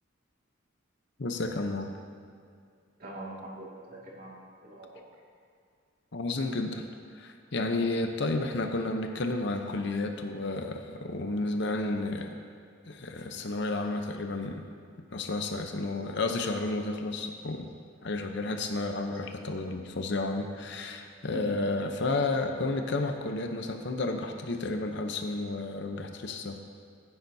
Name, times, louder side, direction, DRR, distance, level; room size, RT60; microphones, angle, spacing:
voice 1, 1.2-1.9 6.1-6.9 7.2-12.4 12.9-14.6 15.1-17.7 18.0-26.6, left 2 dB, 60° left, 5 dB, 0.8 m, -31 dB
voice 2, 3.0-4.9 21.3-21.7, right 1 dB, 45° right, -4 dB, 2.2 m, -43 dB
15.0 x 9.5 x 2.7 m, 2.3 s
head